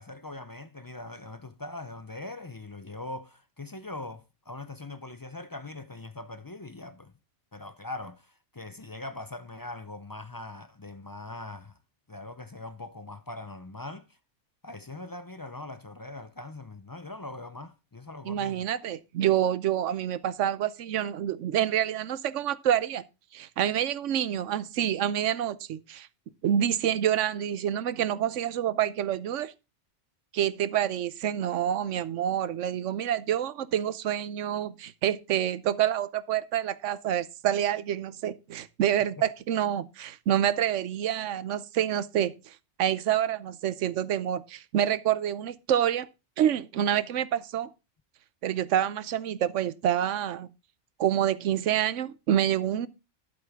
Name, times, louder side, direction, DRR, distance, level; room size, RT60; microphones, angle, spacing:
voice 1, 0.0-7.1 7.5-11.8 12.1-14.2 14.6-18.6, left 2 dB, 35° left, 0.3 m, -41 dB
voice 2, 18.3-23.0 23.3-26.1 26.4-29.5 30.3-46.1 46.4-47.7 48.4-50.5 51.0-52.9, right 10 dB, 85° right, 1.0 m, -27 dB
11.5 x 8.5 x 3.6 m
omnidirectional pair, 1.2 m